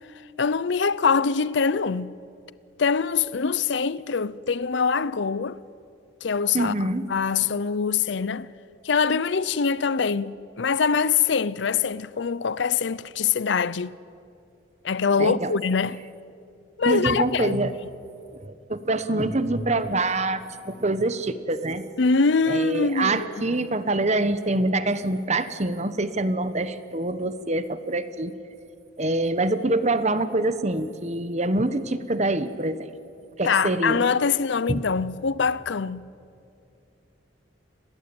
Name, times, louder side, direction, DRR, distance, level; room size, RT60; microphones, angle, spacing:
voice 1, 0.4-2.2 2.8-5.6 6.2-6.7 7.1-8.5 8.8-13.9 14.8-16.0 16.8-17.6 22.0-23.3 33.4-36.1, left 5 dB, 65° left, 0.6 m, -24 dB
voice 2, 6.5-7.1 15.2-15.5 16.8-17.7 18.3-21.8 22.5-28.3 29.0-32.9 33.4-34.0 34.7-34.8, right 2 dB, 35° right, 1.1 m, -25 dB
30.0 x 21.0 x 8.8 m
head